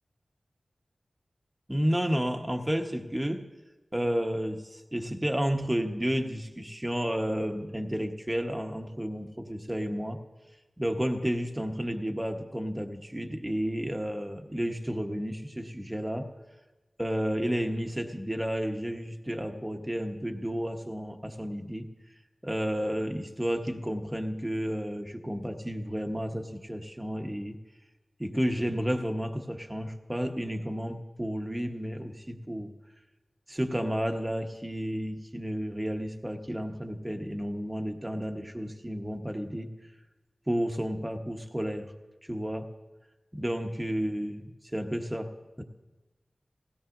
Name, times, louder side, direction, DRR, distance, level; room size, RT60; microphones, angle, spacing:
voice 1, 1.7-3.5 3.9-10.2 10.8-16.3 17.0-21.9 22.4-27.6 28.2-32.7 33.5-39.7 40.5-41.9 42.3-42.7 43.3-45.6, equal, 15° right, 4 dB, 1.2 m, -31 dB
19.0 x 16.5 x 2.6 m, 1.1 s
wide cardioid pair, 60°, 0 cm